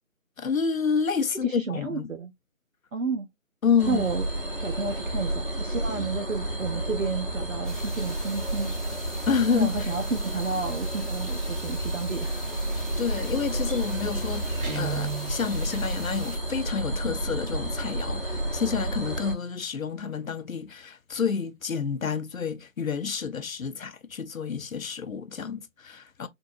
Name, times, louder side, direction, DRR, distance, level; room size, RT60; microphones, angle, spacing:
voice 1, 0.4-2.1 3.6-4.0 9.3-9.9 13.0-26.3, left 6 dB, 75° left, 0.6 m, -29 dB
voice 2, 1.4-2.3 2.9-3.3 3.9-4.2 4.6-8.7 9.5-12.4, right 4 dB, 65° right, 0.6 m, -31 dB
sound 1, 3.8-19.3, right 1 dB, 40° left, 0.8 m, -31 dB
sound 2, 7.6-16.4, equal, ahead, 0.4 m, -44 dB
Guitar, 14.6-15.4, right 7 dB, 90° right, 1.0 m, -32 dB
3.6 x 2.8 x 2.4 m
figure-of-eight pair, 180°, 42 cm